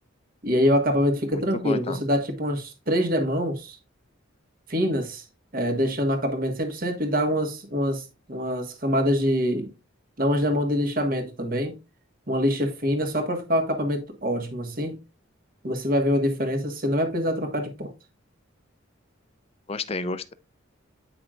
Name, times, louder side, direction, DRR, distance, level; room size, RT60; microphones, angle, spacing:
voice 1, 0.4-3.8 4.7-5.2 5.5-9.7 10.2-11.8 12.3-15.0 15.6-17.9, equal, 45° right, 1.5 m, -25 dB
voice 2, 1.3-2.0 19.7-20.3, left 3 dB, 30° left, 0.5 m, -31 dB
9.0 x 5.8 x 2.4 m
head